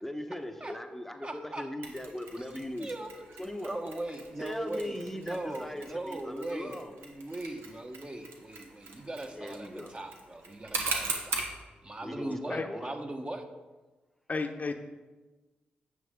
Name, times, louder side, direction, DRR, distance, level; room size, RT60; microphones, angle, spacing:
voice 1, 0.0-2.9 3.4-3.8 4.4-6.9 9.3-9.9 12.0-12.9, left 1 dB, 5° left, 6 dB, 0.9 m, -39 dB
voice 2, 1.2-1.7 2.4-2.5 2.8-11.5 11.8-13.5, right 1 dB, 30° right, 4 dB, 1.2 m, -39 dB
Mechanisms, 1.8-11.6, right 3 dB, 80° right, 1.3 m, -40 dB
voice 3, 14.3-14.7, left 4 dB, 40° left, 5 dB, 0.8 m, -32 dB
9.3 x 6.2 x 3.7 m, 1.2 s
supercardioid pair, 45°, 4 cm